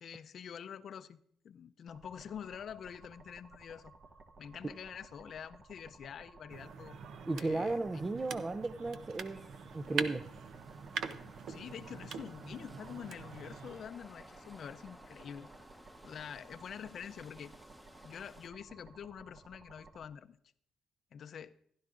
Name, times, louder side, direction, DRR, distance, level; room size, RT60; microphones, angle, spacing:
voice 1, 0.0-1.2 1.4-3.9 4.4-7.0 7.3-8.0 11.2-15.5 16.0-17.5 18.0-20.4 21.1-21.5, left 8 dB, 60° left, 13 dB, 0.5 m, -46 dB
sound 1, 1.9-20.0, right 3 dB, 50° right, 1.3 m, -58 dB
Auto Rickshaw - Clicks Creaks and Noises, 6.5-13.9, right 6 dB, 70° right, 0.6 m, -43 dB
voice 2, 7.3-9.4 9.7-10.2, right 2 dB, 25° right, 11 dB, 0.4 m, -34 dB
sound 2, 9.2-18.5, equal, 5° right, 0.9 m, -58 dB
15.5 x 11.5 x 2.5 m, 0.65 s
cardioid pair, 90°, 0 cm